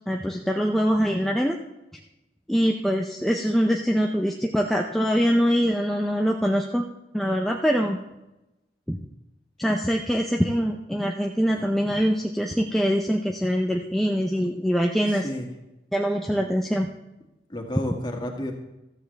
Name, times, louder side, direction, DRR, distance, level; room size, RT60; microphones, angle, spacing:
voice 1, 0.1-1.6 2.5-6.8 7.1-8.0 8.9-9.0 9.6-15.2 15.9-16.9, equal, ahead, 1 dB, 0.6 m, -23 dB
voice 2, 11.5-12.0 15.1-15.5 16.4-16.5 17.5-18.5, left 1 dB, 25° left, 1 dB, 2.0 m, -32 dB
15.0 x 13.5 x 3.4 m, 0.95 s
head